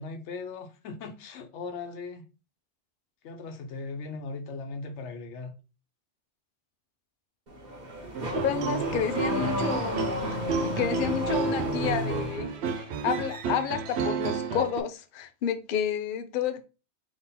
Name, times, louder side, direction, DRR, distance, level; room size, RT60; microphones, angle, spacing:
voice 1, 0.0-2.2 3.2-5.5, left 4 dB, 90° left, 1.0 m, -38 dB
Car / Accelerating revving vroom, 7.5-12.5, equal, 40° right, 1.1 m, -32 dB
sound 1, 8.1-14.8, right 5 dB, 75° right, 0.8 m, -31 dB
voice 2, 8.4-16.6, left 7 dB, 60° left, 0.7 m, -30 dB
3.8 x 2.9 x 4.1 m
omnidirectional pair, 1.2 m